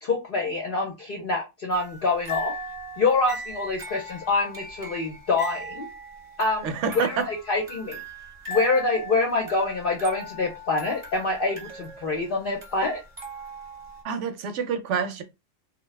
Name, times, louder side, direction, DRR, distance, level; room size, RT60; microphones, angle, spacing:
voice 1, 0.0-2.5 3.0-5.9 6.4-6.7 6.9-8.0 8.5-13.0, left 3 dB, 55° left, 0.7 m, -26 dB
sound 1, 1.7-14.0, right 1 dB, 30° right, 0.7 m, -39 dB
voice 2, 6.6-7.3 14.0-15.2, right 6 dB, 70° right, 0.9 m, -27 dB
2.7 x 2.2 x 3.1 m
omnidirectional pair, 1.4 m